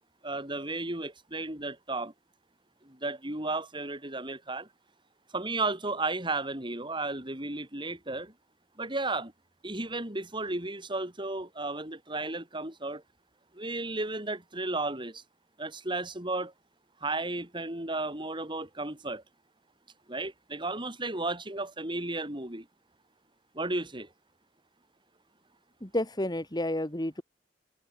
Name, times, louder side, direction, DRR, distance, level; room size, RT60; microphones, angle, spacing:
voice 1, 0.2-2.1 2.8-4.7 5.3-8.3 8.8-9.3 9.6-13.0 13.5-15.2 15.6-16.5 17.0-19.2 20.1-22.7 23.5-24.1, right 2 dB, 30° right, 6.5 m, -34 dB
voice 2, 25.8-27.2, left 1 dB, 25° left, 2.3 m, -30 dB
head